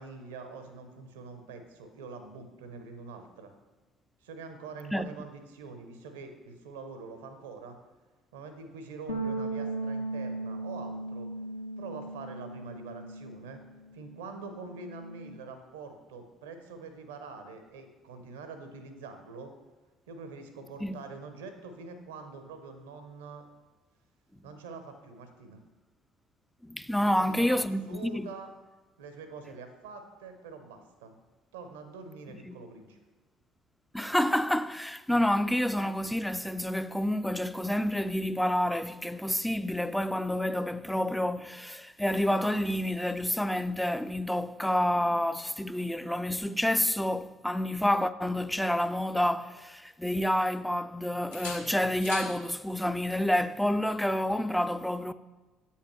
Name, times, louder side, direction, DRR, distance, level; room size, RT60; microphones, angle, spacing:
voice 1, 0.0-3.5 4.2-7.8 8.3-11.3 11.8-13.6 13.9-19.5 20.1-23.5 24.4-25.6 27.0-28.5 29.0-31.1 31.5-33.0, right 4 dB, 75° right, 0.7 m, -45 dB
sound 1, 9.1-13.6 13.9-15.3, right 2 dB, 90° left, 0.6 m, -37 dB
voice 2, 26.6-28.3 32.5-32.6 33.9-55.1, left 1 dB, 5° left, 0.3 m, -28 dB
sound 2, 48.7-49.7 50.1-50.9 51.3-52.4 54.2-54.5, left 5 dB, 75° left, 0.9 m, -45 dB
8.1 x 5.6 x 3.2 m
figure-of-eight pair, 55°, 0 cm